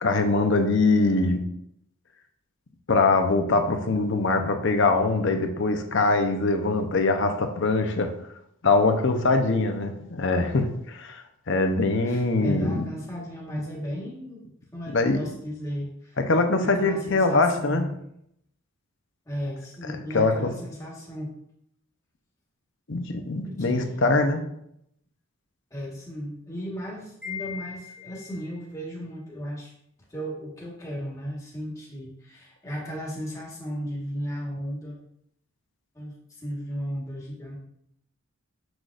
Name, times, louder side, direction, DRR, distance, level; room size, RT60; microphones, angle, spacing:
voice 1, 0.0-1.4 2.9-8.1 8.6-12.9 14.9-15.2 16.3-17.8 20.1-20.5 22.9-24.4, left 3 dB, 55° left, 6 dB, 0.7 m, -23 dB
voice 2, 12.0-16.2 16.6-18.0 19.2-21.3 23.4-24.4 25.7-29.7 30.1-35.0 35.9-37.6, equal, 15° left, -3 dB, 1.4 m, -35 dB
Wind chime, 27.2-28.6, left 7 dB, 5° right, 1.4 m, -39 dB
6.5 x 6.1 x 2.5 m, 0.74 s
head